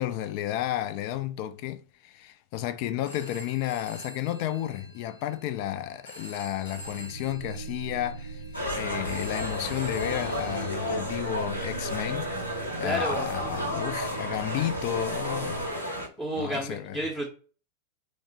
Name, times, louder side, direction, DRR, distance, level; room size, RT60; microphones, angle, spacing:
voice 1, 0.0-8.4 8.7-15.6 16.3-17.0, left 12 dB, 45° left, 0.3 m, -32 dB
Telephone, 2.9-10.7, left 1 dB, 60° left, 0.7 m, -47 dB
sound 1, 6.7-15.7, right 3 dB, 85° right, 0.4 m, -41 dB
sound 2, 8.5-16.1, left 1 dB, 85° left, 0.9 m, -32 dB
voice 2, 12.8-13.3 16.2-17.3, right 1 dB, ahead, 0.7 m, -31 dB
3.2 x 2.0 x 2.7 m
figure-of-eight pair, 90°, 0 cm